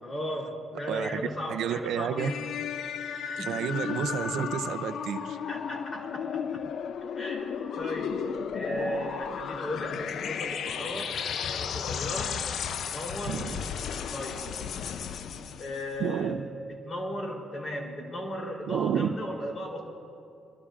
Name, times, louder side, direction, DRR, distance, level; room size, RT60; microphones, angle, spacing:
voice 1, 0.0-2.5 3.2-3.7 5.5-6.4 7.2-8.2 8.5-11.2 11.5-12.4 12.9-13.5 14.1-14.6 15.4-16.4 16.8-19.8, equal, 35° left, 0 dB, 3.2 m, -36 dB
voice 2, 0.9-1.2 1.5-2.3 3.4-5.4 13.3-13.7 16.0-16.4 18.7-19.1, right 8 dB, 80° right, 11 dB, 0.6 m, -30 dB
sound 1, 2.2-15.9, left 7 dB, 65° left, 0.5 m, -34 dB
27.0 x 13.0 x 2.4 m, 2.5 s
cardioid pair, 90°, 0 cm